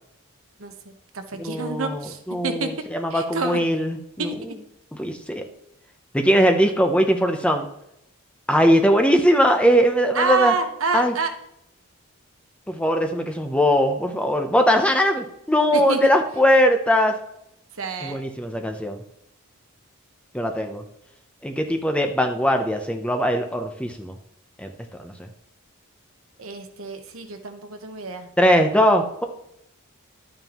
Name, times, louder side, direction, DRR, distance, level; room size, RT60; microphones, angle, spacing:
voice 1, 0.6-2.8 3.1-3.6 4.2-4.6 10.1-11.3 15.7-16.0 17.8-18.2 26.4-28.3, right 4 dB, 70° right, 7 dB, 1.1 m, -28 dB
voice 2, 1.4-4.3 5.0-5.4 6.1-7.7 8.5-10.5 10.9-11.1 12.7-17.1 18.0-19.0 20.3-20.8 21.4-24.1 24.6-24.7 25.0-25.1 28.4-29.2, equal, 5° left, 4 dB, 0.7 m, -20 dB
11.0 x 9.0 x 3.0 m, 0.77 s
head